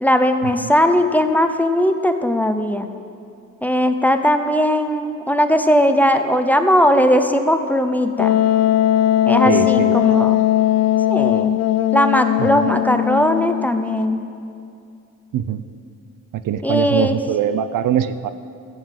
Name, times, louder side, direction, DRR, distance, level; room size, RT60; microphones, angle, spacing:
voice 1, 0.0-2.9 3.6-8.4 9.3-10.5 11.1-11.6 11.9-14.3 16.6-17.2, equal, 5° left, 7 dB, 0.7 m, -18 dB
Wind instrument woodwind instrument, 8.2-13.7, left 13 dB, 55° left, 0.4 m, -18 dB
voice 2, 9.4-10.4 12.4-12.7 15.3-15.6 16.3-18.3, right 10 dB, 80° right, 12 dB, 0.7 m, -22 dB
14.5 x 7.9 x 7.6 m, 2.5 s
cardioid pair, 115°, 32 cm